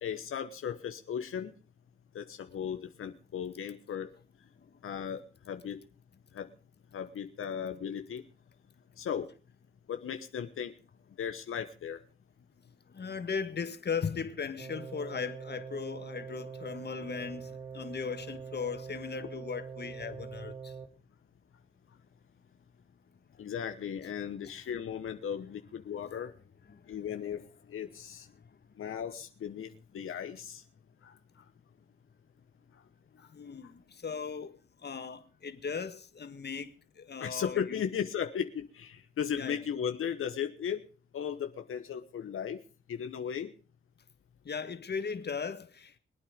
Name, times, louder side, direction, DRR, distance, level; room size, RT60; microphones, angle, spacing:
voice 1, 0.0-1.5 2.1-4.1 4.8-5.8 6.3-6.5 6.9-8.2 9.0-9.3 9.9-10.7 11.2-12.0 19.2-19.3 23.4-26.3 26.9-27.4 27.7-28.3 28.8-30.6 31.0-31.1 37.2-40.8 41.1-42.6 42.9-43.5, left 8 dB, 90° left, 1.2 m, -36 dB
voice 2, 12.9-20.7 26.7-26.9 27.3-27.5 33.3-37.8 39.4-39.6 44.4-46.0, left 6 dB, 55° left, 1.7 m, -38 dB
sound 1, 14.6-20.9, right 6 dB, 85° right, 2.9 m, -43 dB
23.5 x 9.1 x 5.1 m
cardioid pair, 80°, 21 cm